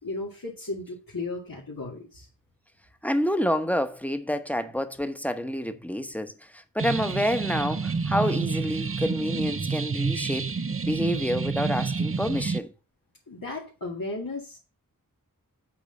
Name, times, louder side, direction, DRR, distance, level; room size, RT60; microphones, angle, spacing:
voice 1, 0.0-2.3 13.3-14.6, left 2 dB, 80° left, 2.1 m, -35 dB
voice 2, 3.0-12.7, equal, 5° left, 1.0 m, -28 dB
sound 1, 6.8-12.6, right 4 dB, 40° right, 0.6 m, -29 dB
8.3 x 3.9 x 6.5 m
wide cardioid pair, 55°, 34 cm